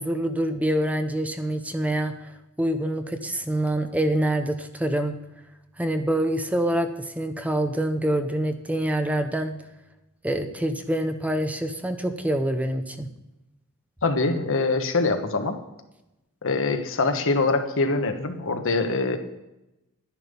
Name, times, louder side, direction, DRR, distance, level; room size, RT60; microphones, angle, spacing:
voice 1, 0.0-2.1 2.6-5.2 5.8-9.6 10.2-13.1, right 1 dB, 5° right, 7 dB, 0.7 m, -26 dB
voice 2, 14.0-15.6 16.4-19.2, left 3 dB, 60° left, 6 dB, 1.3 m, -24 dB
11.5 x 10.5 x 5.3 m, 0.95 s
head